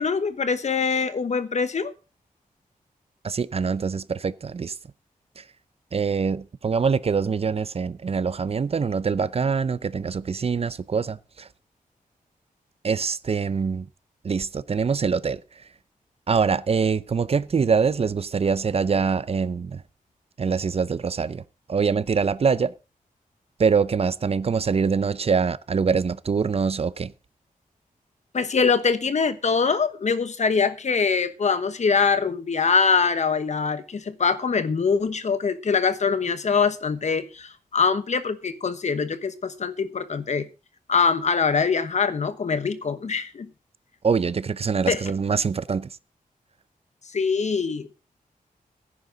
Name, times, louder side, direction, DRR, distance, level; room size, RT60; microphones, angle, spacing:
voice 1, 0.0-1.9 28.3-40.4 40.9-43.5 44.9-45.0 47.1-47.9, left 5 dB, 50° left, 1.2 m, -23 dB
voice 2, 3.2-4.8 5.4-5.5 5.9-11.5 12.8-13.9 14.2-15.4 16.3-19.8 20.4-21.4 21.7-22.7 23.6-27.1 44.0-45.9, right 5 dB, 45° right, 0.6 m, -24 dB
16.0 x 9.7 x 3.9 m
wide cardioid pair, 145°, 15 cm